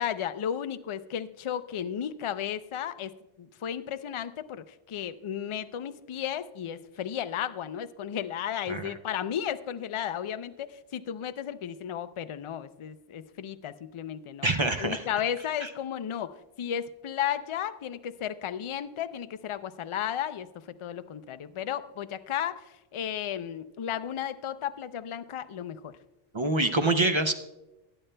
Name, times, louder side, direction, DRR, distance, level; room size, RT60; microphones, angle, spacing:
voice 1, 0.0-14.5 14.8-20.5 20.8-26.0, left 9 dB, 60° left, 12 dB, 0.3 m, -34 dB
voice 2, 14.4-15.1 15.6-15.7 26.3-27.3, right 2 dB, 40° right, 7 dB, 0.4 m, -25 dB
21.0 x 8.9 x 2.2 m, 0.98 s
omnidirectional pair, 1.0 m